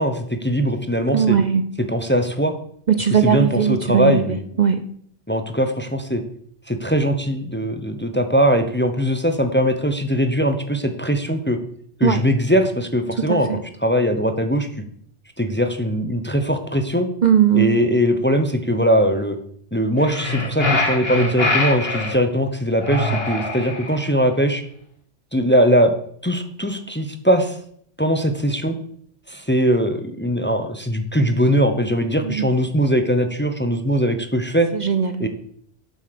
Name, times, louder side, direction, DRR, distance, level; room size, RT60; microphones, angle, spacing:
voice 1, 0.0-1.4 1.9-2.5 3.0-4.4 5.3-6.2 6.7-11.6 12.0-13.5 13.8-14.8 15.4-17.1 17.5-19.4 19.7-24.6 25.3-25.9 26.2-27.6 28.0-28.8 29.3-34.7 35.2-35.3, equal, 10° left, 8 dB, 0.9 m, -20 dB
voice 2, 1.1-1.7 2.9-4.9 12.0-12.2 13.3-13.6 17.2-17.8 32.3-32.5 34.8-35.3, right 8 dB, 50° right, 10 dB, 0.7 m, -19 dB
sound 1, 20.0-22.2 22.8-24.1, left 2 dB, 65° left, 2.4 m, -23 dB
8.3 x 7.5 x 6.8 m, 0.64 s
omnidirectional pair, 1.1 m